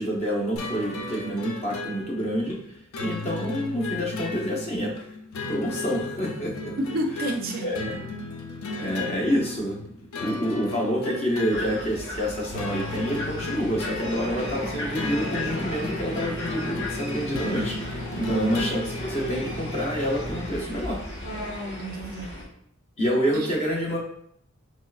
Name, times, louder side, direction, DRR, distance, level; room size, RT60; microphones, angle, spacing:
voice 1, 0.0-2.6 3.0-4.9 5.5-6.7 7.6-8.1 8.8-9.8 10.1-21.0 23.0-24.0, equal, 30° left, -2 dB, 0.7 m, -28 dB
sound 1, 0.6-19.8, left 3 dB, 85° left, 0.5 m, -36 dB
voice 2, 6.8-7.7 18.2-18.6 21.8-22.4 23.3-23.5, right 1 dB, 45° right, 4 dB, 0.4 m, -30 dB
sound 2, 11.5-22.4, left 1 dB, 60° left, 1.3 m, -35 dB
Engine, 14.3-20.4, equal, 15° right, 0.7 m, -39 dB
3.5 x 3.1 x 2.3 m, 0.69 s
head